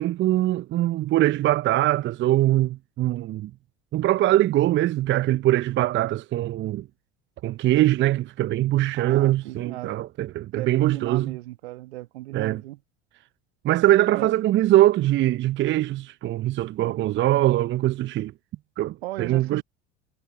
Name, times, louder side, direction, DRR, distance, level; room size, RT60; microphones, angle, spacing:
voice 1, 0.0-3.5 3.9-6.9 7.4-11.4 12.3-12.6 13.6-18.3 18.8-19.6, right 15 dB, 35° right, 0.8 m, -22 dB
voice 2, 8.9-9.9 10.5-12.8 14.1-14.3 16.8-17.0 19.0-19.6, right 18 dB, 65° right, 1.8 m, -36 dB
figure-of-eight pair, 75°, 33 cm